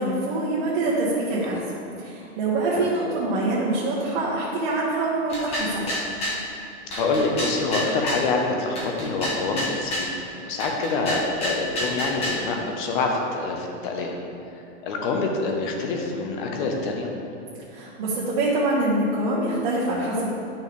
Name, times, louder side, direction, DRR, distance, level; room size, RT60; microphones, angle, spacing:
voice 1, 0.0-1.6 2.0-5.9 17.7-20.3, right 2 dB, 45° right, -8 dB, 1.4 m, -25 dB
sound 1, 5.3-6.4 6.9-8.3 8.8-10.1 10.6-12.4, left 1 dB, 15° left, 1.0 m, -29 dB
voice 2, 6.9-14.2 14.5-17.1, left 3 dB, 40° left, 1 dB, 1.1 m, -26 dB
11.0 x 6.1 x 3.4 m, 2.8 s
supercardioid pair, 165°, 37 cm